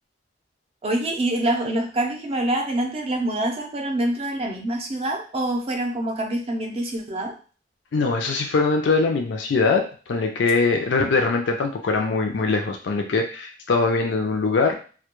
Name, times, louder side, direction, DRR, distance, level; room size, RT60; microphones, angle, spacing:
voice 1, 0.8-7.3, right 1 dB, 35° right, 3 dB, 0.5 m, -25 dB
voice 2, 7.9-14.8, left 4 dB, 80° left, 3 dB, 0.4 m, -22 dB
2.2 x 2.1 x 2.9 m, 0.38 s
head